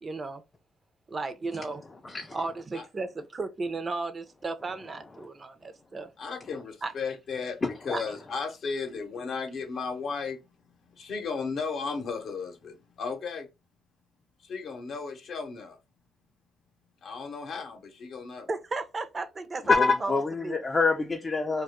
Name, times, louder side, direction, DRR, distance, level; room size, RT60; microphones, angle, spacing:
voice 1, 0.0-0.4 1.1-1.8 2.1-6.1 6.8-6.9 7.9-8.0 18.5-20.6, right 3 dB, 35° right, 0.4 m, -34 dB
voice 2, 2.0-2.4 7.6-8.1 19.6-21.6, left 4 dB, 30° left, 0.4 m, -26 dB
voice 3, 6.2-13.5 14.4-15.8 17.0-18.5, left 5 dB, 65° left, 0.7 m, -35 dB
2.2 x 2.1 x 2.9 m
cardioid pair, 90°, 0 cm